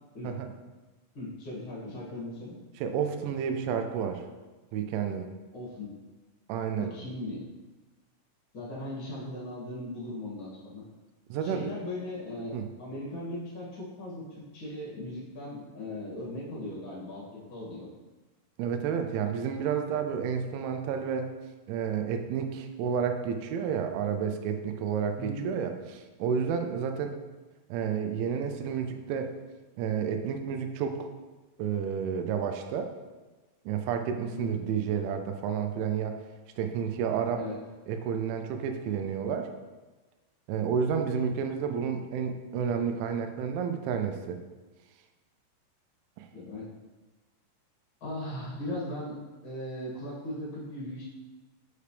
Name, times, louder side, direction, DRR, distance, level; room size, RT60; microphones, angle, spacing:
voice 1, 1.1-2.5 5.5-5.9 6.7-7.4 8.5-10.8 11.4-17.9 25.2-25.5 34.3-34.6 37.3-37.6 46.3-46.7 48.0-49.2 49.4-51.0, left 1 dB, 40° left, -6 dB, 2.0 m, -38 dB
voice 2, 2.8-4.2 4.7-5.3 6.5-6.9 11.3-11.7 12.5-12.7 18.6-21.3 21.7-27.2 27.7-29.4 29.8-31.1 31.6-32.9 33.7-36.2 36.6-37.4 37.9-39.5 40.5-44.4 46.2-46.3, right 7 dB, 85° right, 6 dB, 3.0 m, -30 dB
6.9 x 6.7 x 3.3 m, 1.2 s
omnidirectional pair, 5.3 m